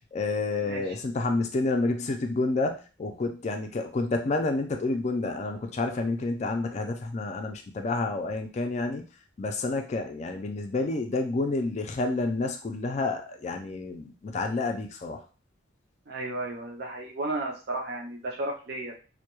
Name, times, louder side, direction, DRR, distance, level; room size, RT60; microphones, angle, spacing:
voice 1, 0.1-9.0 9.4-15.2, left 3 dB, 35° left, 4 dB, 0.3 m, -29 dB
voice 2, 0.6-0.9 16.1-19.0, right 2 dB, 55° right, -1 dB, 0.5 m, -33 dB
2.2 x 2.1 x 2.9 m, 0.35 s
head